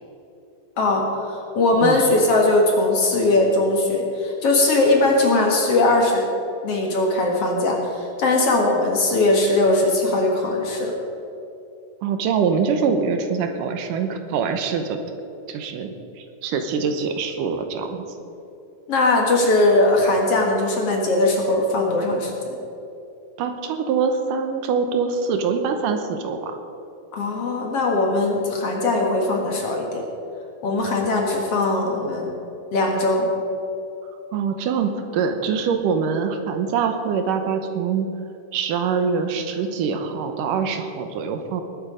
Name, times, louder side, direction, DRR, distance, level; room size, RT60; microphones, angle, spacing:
voice 1, 0.8-6.3 6.6-10.9 18.9-22.6 27.1-30.0 30.6-32.3 32.7-33.3, left 2 dB, 50° left, 0 dB, 2.4 m, -20 dB
voice 2, 12.0-15.0 15.5-18.2 23.4-26.6 34.3-38.1 38.5-41.6, right 6 dB, 80° right, 6 dB, 2.5 m, -24 dB
19.5 x 9.2 x 5.1 m, 2.8 s
omnidirectional pair, 3.9 m